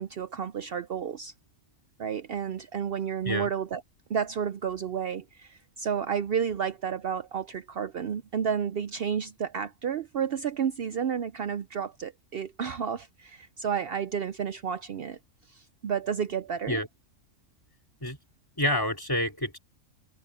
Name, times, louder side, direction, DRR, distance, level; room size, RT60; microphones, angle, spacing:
voice 1, 0.0-1.3 2.0-3.8 4.1-15.2 15.5-16.8, right 7 dB, 60° right, 0.6 m, -31 dB
voice 2, 18.6-19.6, left 1 dB, 15° left, 3.5 m, -28 dB
omnidirectional pair, 1.5 m